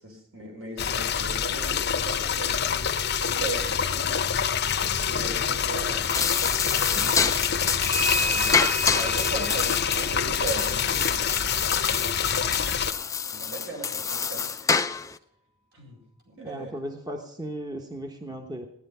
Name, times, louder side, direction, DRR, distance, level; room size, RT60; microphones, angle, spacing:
voice 1, 0.0-4.2 5.0-6.0 8.2-11.2 13.3-14.5 15.7-16.0 16.3-16.7, right 2 dB, 70° right, 1 dB, 4.8 m, -37 dB
sound 1, 0.8-12.9, left 7 dB, 45° left, 0.7 m, -26 dB
Clock, 1.6-1.7 2.1-2.2 5.0-5.3 7.8-12.0, right 1 dB, 45° right, 4.4 m, -34 dB
sound 2, 5.9-15.2, left 6 dB, 15° left, 0.4 m, -28 dB
voice 2, 7.0-7.3 16.4-18.7, right 1 dB, 20° right, 3 dB, 1.0 m, -36 dB
17.0 x 10.0 x 5.5 m, 0.81 s
head